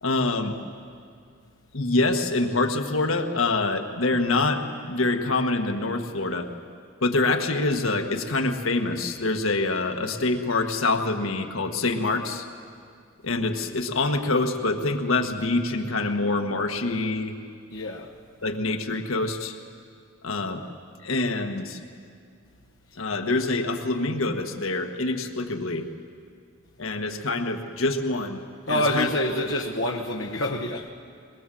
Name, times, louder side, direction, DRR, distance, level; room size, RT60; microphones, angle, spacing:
voice 1, 0.0-0.6 1.7-6.5 7.0-12.4 13.2-17.4 18.4-19.6 20.2-20.6 21.0-21.8 23.0-25.9 26.8-28.4 28.7-29.1 29.4-29.5, left 2 dB, 85° left, 1.5 m, -25 dB
voice 2, 17.7-18.1 28.7-30.9, left 1 dB, 65° left, 1.1 m, -26 dB
21.5 x 21.0 x 7.7 m
head